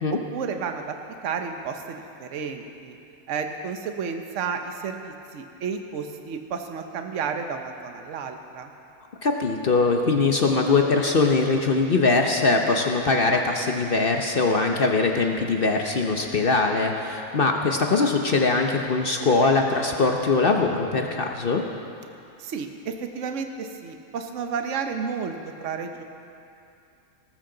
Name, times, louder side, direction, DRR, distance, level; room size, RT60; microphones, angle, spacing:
voice 1, 0.3-0.9 1.2-3.0 3.3-8.7 22.4-25.3 25.6-26.0, right 6 dB, 60° right, 5 dB, 1.2 m, -32 dB
voice 2, 9.2-21.6, left 3 dB, 50° left, 3 dB, 0.9 m, -22 dB
19.0 x 13.5 x 3.9 m, 2.6 s
omnidirectional pair, 1.5 m